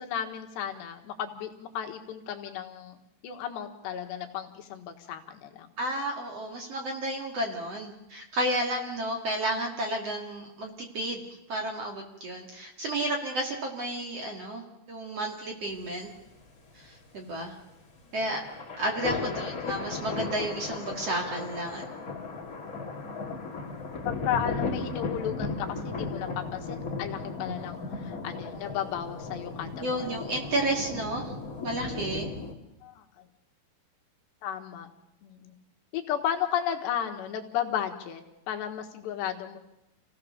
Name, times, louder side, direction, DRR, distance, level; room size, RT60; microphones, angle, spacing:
voice 1, 0.0-3.0 3.2-5.7 18.0-18.1 19.2-19.3 24.1-30.1 32.8-33.3 34.4-34.9 35.2-35.5 35.9-39.6, left 9 dB, 80° left, 4 dB, 3.7 m, -34 dB
voice 2, 5.8-11.2 11.5-16.1 16.7-17.5 18.1-18.4 18.8-21.8 29.8-31.3 31.6-32.3, right 1 dB, 45° right, 2 dB, 2.6 m, -32 dB
sound 1, 15.7-32.5, left 4 dB, 25° left, 2.2 m, -36 dB
28.5 x 17.0 x 6.8 m, 0.93 s
omnidirectional pair, 5.1 m